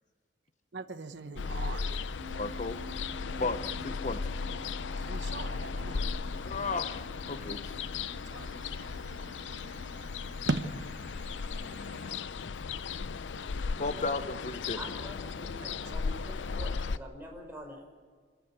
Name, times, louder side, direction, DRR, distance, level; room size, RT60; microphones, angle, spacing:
voice 1, 0.7-2.0 2.3-2.4 3.3-3.4 5.0-6.1 7.4-7.6 8.3-8.9 10.5-10.6 13.3-14.0 15.6-15.7, right 2 dB, 75° right, 9 dB, 1.0 m, -38 dB
Ocean, 1.4-17.0, left 5 dB, 85° left, 0.5 m, -36 dB
sound 1, 2.2-12.2, equal, 45° right, 1.3 m, -50 dB
voice 2, 2.4-2.8 3.4-4.3 6.4-7.8 12.0-12.1 13.8-14.8, left 3 dB, 40° left, 10 dB, 0.7 m, -34 dB
voice 3, 14.7-17.8, right 1 dB, 10° right, 0 dB, 5.1 m, -45 dB
26.0 x 13.5 x 8.1 m, 1.5 s
head